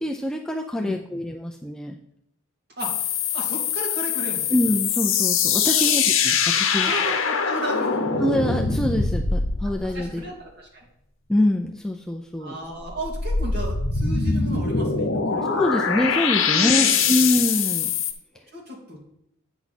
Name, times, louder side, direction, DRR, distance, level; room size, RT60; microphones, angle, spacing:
voice 1, 0.0-2.0 4.5-6.9 8.2-10.2 11.3-12.6 15.4-17.9, left 1 dB, 5° left, 1 dB, 0.4 m, -25 dB
sound 1, 2.8-10.2 12.9-18.1, left 6 dB, 75° left, 0.9 m, -23 dB
voice 2, 3.3-4.5 5.8-5.9 6.7-8.1 9.9-10.9 12.4-15.5 16.4-17.1 18.5-19.0, right 1 dB, 50° right, -3 dB, 2.5 m, -34 dB
8.9 x 5.9 x 4.2 m, 0.74 s
head